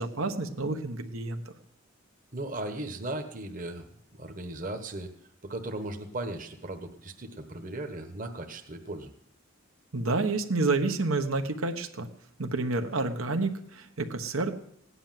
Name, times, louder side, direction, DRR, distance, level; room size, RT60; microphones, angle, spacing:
voice 1, 0.0-1.4 9.9-12.1 12.4-14.6, right 3 dB, 80° right, 6 dB, 1.4 m, -29 dB
voice 2, 2.3-3.9 4.2-5.1 5.4-9.1, right 1 dB, 40° right, 5 dB, 1.3 m, -37 dB
17.0 x 10.0 x 7.5 m, 0.71 s
head